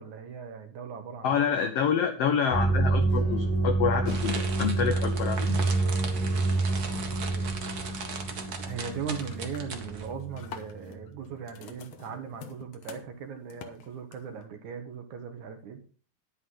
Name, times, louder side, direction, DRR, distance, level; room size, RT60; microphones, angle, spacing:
voice 1, 0.0-1.4 7.2-7.5 8.6-15.8, right 6 dB, 65° right, 6 dB, 2.5 m, -39 dB
voice 2, 1.2-5.7, left 7 dB, 80° left, 7 dB, 1.4 m, -27 dB
sound 1, 2.5-10.7, right 3 dB, 30° right, 2.7 m, -28 dB
sound 2, 2.8-7.3 7.6-8.0 8.3-8.8 9.1-14.4, left 8 dB, 65° left, 2.0 m, -47 dB
sound 3, 4.1-10.1, right 5 dB, 90° right, 0.8 m, -39 dB
10.5 x 10.0 x 3.9 m, 0.41 s
omnidirectional pair, 4.0 m